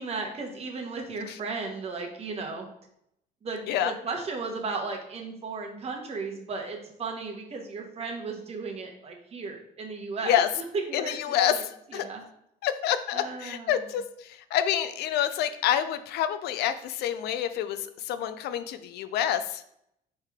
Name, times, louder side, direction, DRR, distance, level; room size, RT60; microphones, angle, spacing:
voice 1, 0.0-2.7 3.4-11.6 11.9-12.2 13.1-13.8, right 4 dB, 35° right, 2 dB, 1.0 m, -35 dB
voice 2, 10.9-12.1 12.6-19.6, left 10 dB, 75° left, 11 dB, 0.4 m, -28 dB
4.5 x 3.2 x 3.5 m, 0.74 s
cardioid pair, 110°, 17 cm